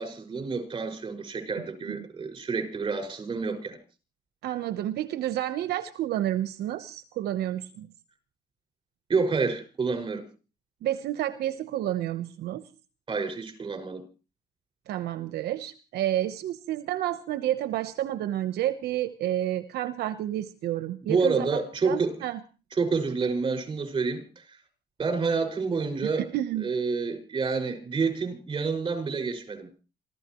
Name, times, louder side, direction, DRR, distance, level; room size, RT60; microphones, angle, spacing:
voice 1, 0.0-3.8 9.1-10.2 13.1-14.0 21.1-22.2 22.7-24.2 25.0-26.3 26.6-29.8, right 4 dB, 30° right, 5.9 m, -28 dB
voice 2, 4.4-7.9 10.8-12.6 14.9-22.4 26.2-26.7, right 13 dB, 75° right, 1.1 m, -30 dB
27.0 x 15.0 x 3.1 m
cardioid pair, 110°, 17 cm